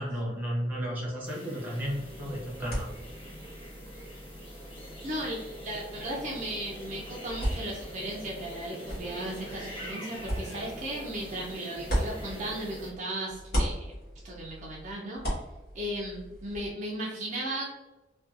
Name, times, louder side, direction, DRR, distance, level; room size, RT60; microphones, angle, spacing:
voice 1, 0.0-2.9, equal, 10° right, -4 dB, 0.8 m, -33 dB
sound 1, 1.2-12.9, equal, 30° left, 1.0 m, -44 dB
sound 2, 1.8-13.0 13.3-16.7, equal, 60° left, 1.2 m, -37 dB
voice 2, 5.0-5.4 5.6-13.9 14.2-15.2 15.7-17.8, right 1 dB, 40° right, -3 dB, 0.5 m, -36 dB
2.5 x 2.3 x 2.5 m, 1.1 s
head